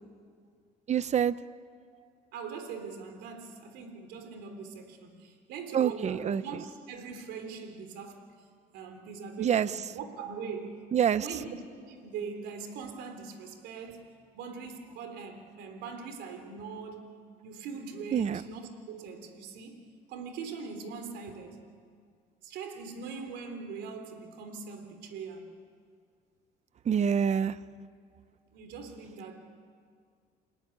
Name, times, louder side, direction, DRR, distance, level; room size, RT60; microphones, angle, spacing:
voice 1, 0.9-1.3 5.7-6.4 9.4-9.7 10.9-11.3 18.1-18.4 26.9-27.5, right 8 dB, 40° right, 16 dB, 0.8 m, -26 dB
voice 2, 1.9-8.3 8.7-10.8 11.2-14.1 14.3-17.2 17.4-19.8 20.1-21.6 22.4-25.5 28.5-29.4, right 5 dB, 85° right, 6 dB, 3.6 m, -41 dB
28.5 x 19.0 x 9.8 m, 2.1 s
cardioid pair, 110°, 17 cm